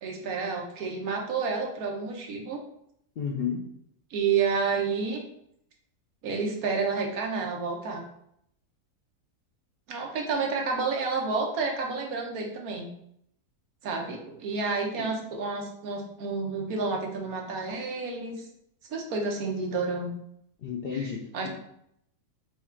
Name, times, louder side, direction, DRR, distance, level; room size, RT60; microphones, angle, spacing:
voice 1, 0.0-2.6 4.1-5.2 6.2-8.0 9.9-12.9 13.8-18.4 18.9-20.1 21.3-21.5, right 4 dB, 70° right, 1 dB, 1.3 m, -30 dB
voice 2, 3.2-3.7 15.0-15.1 20.6-21.5, left 6 dB, 80° left, -1 dB, 0.5 m, -32 dB
4.6 x 2.4 x 4.3 m, 0.73 s
omnidirectional pair, 1.7 m